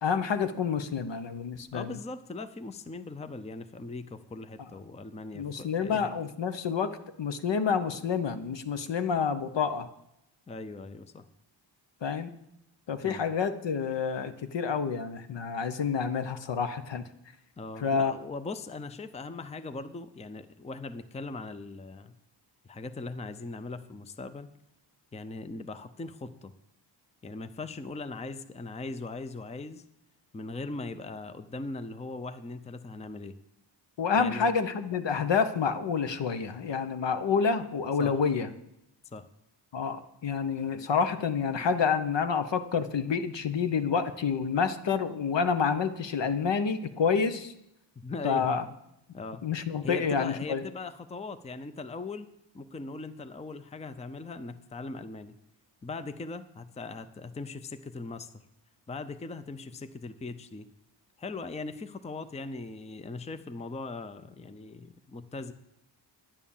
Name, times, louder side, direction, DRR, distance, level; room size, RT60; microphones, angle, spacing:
voice 1, 0.0-2.0 5.3-9.9 12.0-12.3 12.9-17.0 17.8-18.1 34.0-38.5 39.7-47.5 48.2-48.6 49.4-50.6, left 6 dB, 70° left, 10 dB, 1.0 m, -28 dB
voice 2, 1.7-6.1 10.5-11.3 13.0-13.2 17.6-22.1 22.6-24.5 25.1-26.5 27.2-29.8 30.3-33.4 34.2-34.5 38.0-38.2 39.1-39.3 48.0-48.6 49.1-49.4 49.8-52.3 52.5-55.3 55.8-58.4 58.9-60.7 61.2-65.5, left 3 dB, 15° left, 11 dB, 0.5 m, -39 dB
11.0 x 10.0 x 7.2 m, 0.83 s
wide cardioid pair, 160°, 45 cm